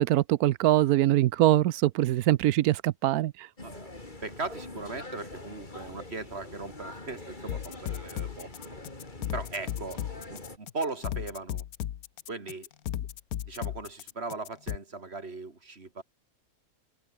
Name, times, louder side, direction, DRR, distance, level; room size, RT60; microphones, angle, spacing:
voice 1, 0.0-3.3, right 14 dB, 85° right, 1.1 m, -23 dB
sound 1, 3.6-10.6, left 2 dB, 30° left, 3.5 m, -44 dB
voice 2, 4.2-8.7 9.3-10.0 10.3-11.6 12.3-12.7 13.4-16.0, right 3 dB, 45° right, 2.8 m, -38 dB
sound 2, 7.5-14.8, left 11 dB, 90° left, 1.4 m, -35 dB
open air
omnidirectional pair, 1.5 m